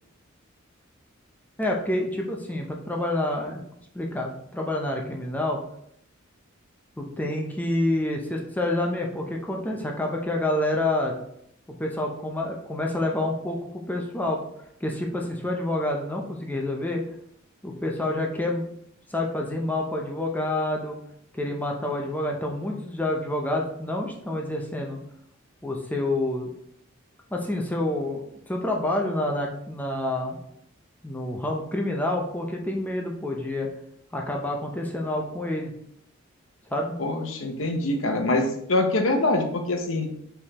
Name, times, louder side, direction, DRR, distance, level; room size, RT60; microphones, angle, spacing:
voice 1, 1.6-3.6 3.9-5.6 7.0-11.1 11.8-14.4 14.8-17.0 17.6-18.7 19.1-21.0 21.3-25.0 25.6-26.5 27.3-30.4 31.0-33.7 34.1-35.7 36.7-37.0, left 1 dB, 10° left, 0 dB, 0.5 m, -28 dB
voice 2, 37.0-40.1, left 2 dB, 75° left, 4 dB, 0.8 m, -24 dB
5.3 x 3.4 x 2.9 m, 0.73 s
head